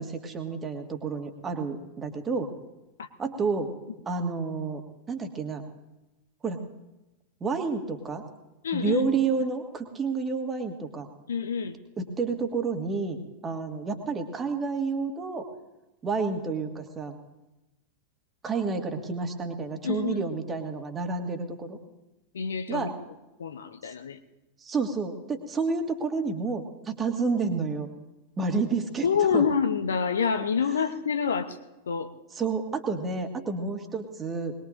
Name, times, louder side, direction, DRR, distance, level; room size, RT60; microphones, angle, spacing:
voice 1, 0.0-2.5 3.2-3.7 4.1-4.8 5.1-5.6 6.4-6.6 7.4-8.2 8.7-11.1 12.0-15.5 16.0-17.2 18.4-21.8 22.7-22.9 24.6-27.9 28.4-29.1 29.3-29.4 32.3-34.6, right 4 dB, 20° right, 4 dB, 1.9 m, -30 dB
voice 2, 8.6-9.0 11.3-11.8 19.8-20.2 22.3-22.9 23.4-24.2 29.0-31.6 31.9-32.1, left 6 dB, 65° left, 10 dB, 0.9 m, -27 dB
21.5 x 20.5 x 2.6 m, 1.0 s
figure-of-eight pair, 90°, 0 cm